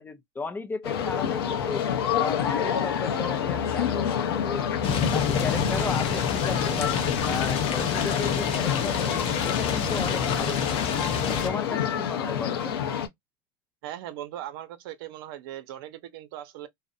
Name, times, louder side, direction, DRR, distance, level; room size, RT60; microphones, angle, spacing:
voice 1, 0.0-1.8 2.2-4.8 5.1-6.9 7.2-10.9 11.2-12.8, left 3 dB, 15° left, 0.4 m, -35 dB
sound 1, 0.8-13.1, left 8 dB, 90° left, 0.7 m, -28 dB
sound 2, 4.8-11.5, left 6 dB, 50° left, 0.7 m, -28 dB
voice 2, 13.8-16.7, right 12 dB, 75° right, 0.6 m, -39 dB
2.5 x 2.0 x 2.5 m
supercardioid pair, 120°, 12 cm